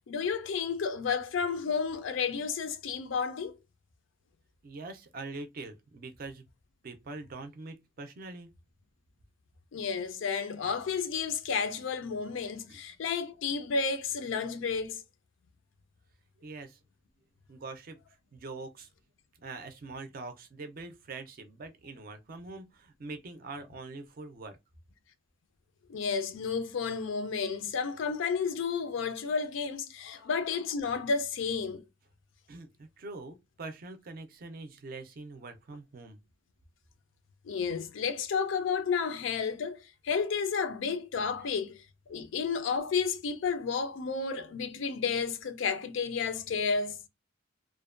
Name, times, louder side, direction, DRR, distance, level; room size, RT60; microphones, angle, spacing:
voice 1, 0.1-3.5 9.7-15.0 25.9-31.8 37.4-39.8 40.0-41.8 42.1-47.0, left 5 dB, 75° left, 0.4 m, -31 dB
voice 2, 4.6-6.4 6.8-8.5 12.7-12.8 16.4-16.8 17.5-18.0 18.3-18.9 19.4-24.6 30.2-30.3 32.5-36.2, right 3 dB, 45° right, 0.4 m, -43 dB
2.5 x 2.1 x 2.4 m
head